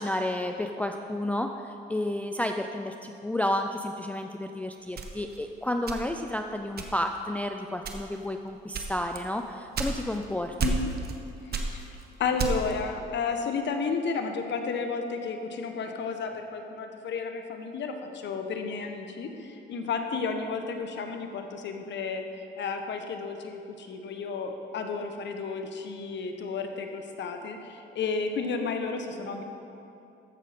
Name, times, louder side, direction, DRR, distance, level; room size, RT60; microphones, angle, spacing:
voice 1, 0.0-10.5, left 1 dB, 5° left, 5 dB, 0.4 m, -31 dB
sound 1, 5.0-6.3 6.8-7.2 7.8-8.3 8.7-10.3 10.6-11.2 11.5-12.8, right 4 dB, 50° right, 1.1 m, -32 dB
voice 2, 11.4-11.8 12.2-22.2 22.6-29.4, left 4 dB, 65° left, 5 dB, 1.1 m, -32 dB
14.5 x 6.4 x 4.2 m, 2.8 s
cardioid pair, 90°, 20 cm